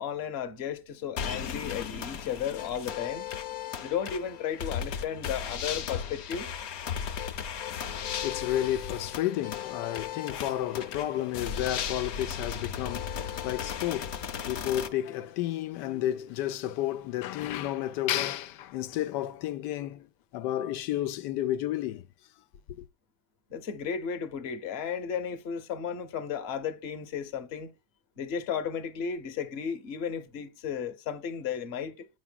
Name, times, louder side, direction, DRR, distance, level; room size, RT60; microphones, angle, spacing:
voice 1, 0.0-3.3 3.8-6.5 23.5-27.7 28.2-32.1, left 7 dB, 45° left, 1.0 m, -34 dB
sound 1, 1.2-14.9, left 8 dB, 65° left, 1.2 m, -36 dB
voice 2, 7.8-20.1 20.3-22.0 22.7-22.8, left 13 dB, 85° left, 1.2 m, -32 dB
8.6 x 5.8 x 2.3 m
omnidirectional pair, 1.8 m